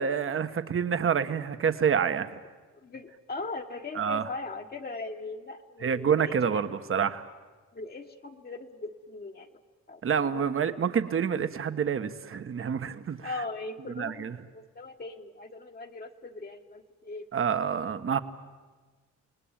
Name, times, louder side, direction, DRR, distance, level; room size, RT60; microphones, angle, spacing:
voice 1, 0.0-2.4 3.9-4.3 5.8-7.2 10.0-13.3 13.9-14.3 17.3-18.2, right 7 dB, 45° right, 11 dB, 1.4 m, -27 dB
voice 2, 2.8-6.7 7.7-9.5 9.9-10.7 13.2-17.3, left 3 dB, 30° left, 3 dB, 1.4 m, -40 dB
29.0 x 19.0 x 9.0 m, 1.4 s
cardioid pair, 90°, 30 cm